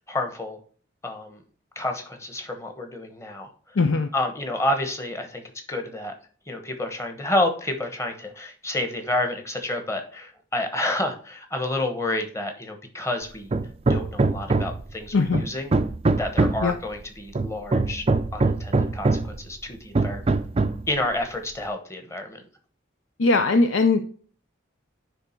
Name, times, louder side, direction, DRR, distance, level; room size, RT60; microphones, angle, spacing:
voice 1, 0.1-0.6 1.0-1.4 1.8-3.8 4.1-5.4 5.7-6.1 6.5-13.5 13.9-15.7 16.2-18.1 18.3-20.4 20.9-22.4, left 1 dB, 15° left, 5 dB, 1.1 m, -29 dB
voice 2, 3.7-4.1 15.1-15.4 16.6-16.7 23.2-24.0, left 3 dB, 80° left, 7 dB, 0.6 m, -20 dB
Hammer, 13.5-14.9 15.3-16.7 17.4-19.4 20.0-20.9, right 3 dB, 30° right, 0.4 m, -23 dB
9.8 x 3.5 x 4.4 m, 0.44 s
head